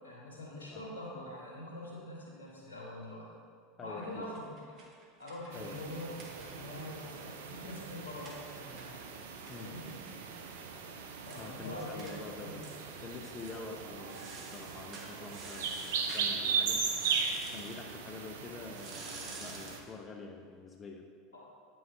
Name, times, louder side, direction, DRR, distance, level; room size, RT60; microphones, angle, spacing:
voice 1, 0.0-3.3 3.8-4.6 5.2-9.0 9.5-9.9 11.3-12.6 21.3-21.4, left 1 dB, 85° left, -4 dB, 1.7 m, -44 dB
voice 2, 3.8-4.2 5.5-5.8 9.5-9.7 11.4-12.6 13.0-16.8 17.2-21.0, left 4 dB, 30° left, 2 dB, 0.6 m, -46 dB
sound 1, 4.2-6.9 7.2-7.3 7.5-10.7 11.0-11.1 11.3-11.5 12.0-12.2 12.6-13.0 13.3-13.6 14.0-16.3 16.9-17.8 18.7-19.9, right 3 dB, 45° right, 1.2 m, -50 dB
sound 2, 5.5-19.8, right 5 dB, 70° right, 0.6 m, -38 dB
8.9 x 5.5 x 3.4 m, 2.1 s
hypercardioid pair, 80°, 0 cm